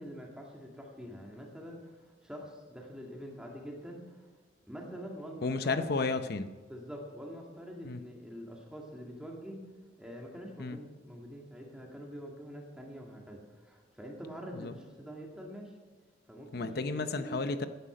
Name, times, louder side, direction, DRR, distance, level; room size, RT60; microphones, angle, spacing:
voice 1, 0.0-4.3 4.7-5.9 6.7-9.6 10.0-15.7 16.3-17.5, equal, 5° right, -1 dB, 2.0 m, -45 dB
voice 2, 5.4-6.5 7.8-8.0 10.6-10.8 14.5-14.7 16.5-17.7, left 3 dB, 55° left, 9 dB, 0.7 m, -32 dB
16.5 x 10.0 x 5.0 m, 1.4 s
head